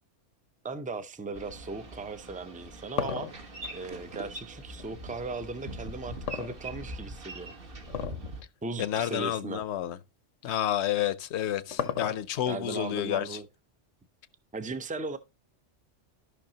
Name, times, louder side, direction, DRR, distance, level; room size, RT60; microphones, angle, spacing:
voice 1, 0.6-7.5 8.6-9.6 12.5-13.5 14.5-15.2, right 3 dB, 10° right, 0.3 m, -37 dB
Boat Water vehicle, 1.3-8.4, right 1 dB, 50° right, 1.3 m, -42 dB
sound 1, 2.4-4.9 6.3-7.1 7.9-8.3 8.6-8.7 9.5-9.6 11.0-12.5, left 8 dB, 90° left, 1.2 m, -34 dB
voice 2, 8.8-10.0 10.4-13.4, left 11 dB, 70° left, 0.9 m, -30 dB
13.5 x 5.7 x 2.8 m
omnidirectional pair, 1.2 m